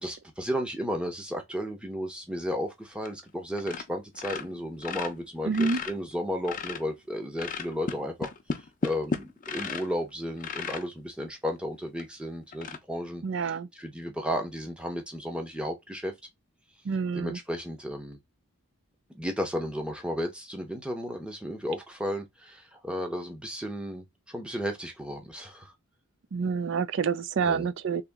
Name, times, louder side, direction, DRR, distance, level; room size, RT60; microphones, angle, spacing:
voice 1, 0.0-8.3 8.8-16.1 17.1-18.2 19.1-25.7 27.4-27.7, equal, 5° right, 0.7 m, -34 dB
sound 1, 3.0-3.3 3.6-3.9 4.1-6.9 7.4-10.0 10.4-10.9 11.5-11.6 12.0-12.1 12.5-12.8, left 4 dB, 35° left, 0.5 m, -34 dB
voice 2, 5.4-5.8 13.2-13.7 16.9-17.4 26.3-28.0, right 5 dB, 55° right, 0.4 m, -27 dB
3.0 x 2.8 x 3.5 m
head